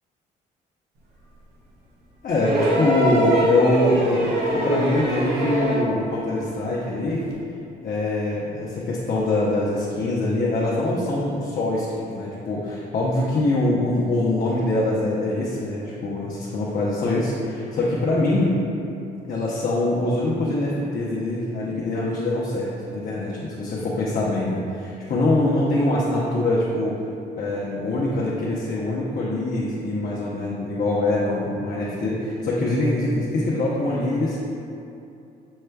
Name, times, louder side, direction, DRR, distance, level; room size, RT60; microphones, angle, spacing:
voice 1, 2.2-7.2 7.8-18.5 19.2-27.0 27.4-34.4, left 2 dB, 50° left, -7 dB, 0.8 m, -23 dB
sound 1, 2.4-6.0 7.3-7.4, equal, 60° right, 0.8 m, -23 dB
6.3 x 3.2 x 2.3 m, 2.7 s
supercardioid pair, 65°, 20 cm